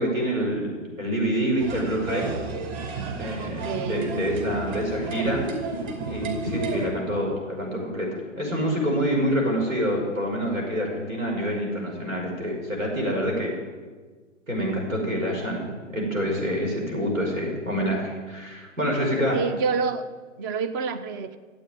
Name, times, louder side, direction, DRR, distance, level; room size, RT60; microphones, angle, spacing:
voice 1, 0.0-2.3 3.2-5.4 6.1-13.5 14.5-19.4, equal, 80° right, -1 dB, 5.7 m, -27 dB
sound 1, 1.6-6.9, right 4 dB, 35° right, 2.6 m, -32 dB
voice 2, 3.4-4.0 19.3-20.0 20.4-21.4, right 5 dB, 15° right, 9 dB, 0.5 m, -28 dB
13.5 x 8.5 x 9.1 m, 1.4 s
figure-of-eight pair, 120°, 39 cm